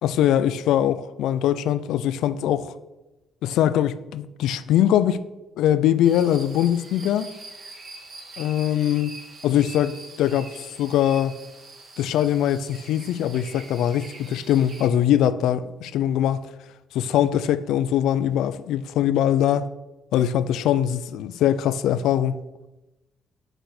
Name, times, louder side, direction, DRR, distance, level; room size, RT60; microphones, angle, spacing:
voice 1, 0.0-2.7 3.4-5.2 5.6-7.3 8.4-9.2 9.4-10.5 10.8-11.4 12.0-16.4 16.9-19.7 20.1-22.4, left 11 dB, 85° left, 0.5 m, -22 dB
sound 1, 6.0-14.9, right 3 dB, 55° right, 2.5 m, -43 dB
8.1 x 6.1 x 6.6 m
cardioid pair, 90°, 0 cm